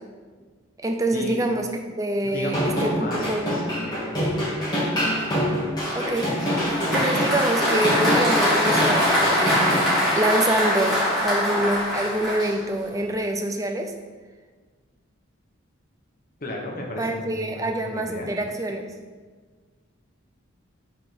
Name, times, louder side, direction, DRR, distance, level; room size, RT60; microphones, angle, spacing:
voice 1, 0.8-3.5 5.9-6.3 6.9-13.9 17.0-18.8, right 1 dB, 15° right, 3 dB, 0.5 m, -26 dB
voice 2, 2.2-4.2 16.4-18.3, left 1 dB, 40° left, 0 dB, 1.2 m, -34 dB
sound 1, 2.4-9.8, equal, 20° left, 2.4 m, -25 dB
Applause, 5.8-12.9, left 1 dB, ahead, 2.3 m, -23 dB
5.7 x 5.0 x 5.9 m, 1.5 s
head